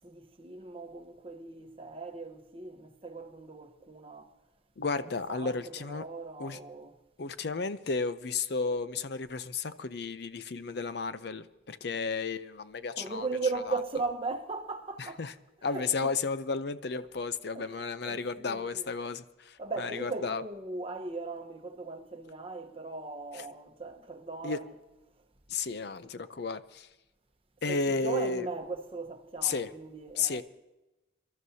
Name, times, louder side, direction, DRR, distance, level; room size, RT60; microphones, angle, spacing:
voice 1, 0.0-4.3 5.0-7.0 13.0-15.2 15.6-16.1 17.5-18.9 19.6-24.8 27.7-30.4, right 3 dB, 30° right, 1.1 m, -38 dB
voice 2, 4.8-6.0 6.4-6.6 7.2-13.2 13.7-13.8 15.0-15.3 15.6-20.4 24.4-24.6 25.5-26.9 27.6-28.5 29.4-29.7 30.2-30.4, left 4 dB, 60° left, 0.6 m, -33 dB
25.5 x 13.0 x 2.8 m
head